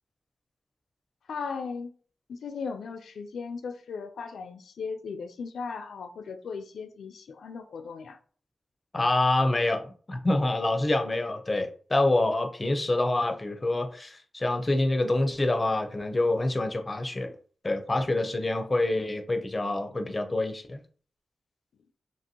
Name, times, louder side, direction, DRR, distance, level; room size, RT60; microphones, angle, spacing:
voice 1, 1.3-1.9 2.3-8.2, left 5 dB, 85° left, 0.3 m, -37 dB
voice 2, 8.9-17.3 17.6-20.8, left 2 dB, 35° left, 0.6 m, -26 dB
2.8 x 2.6 x 2.7 m
cardioid pair, 45°, 0 cm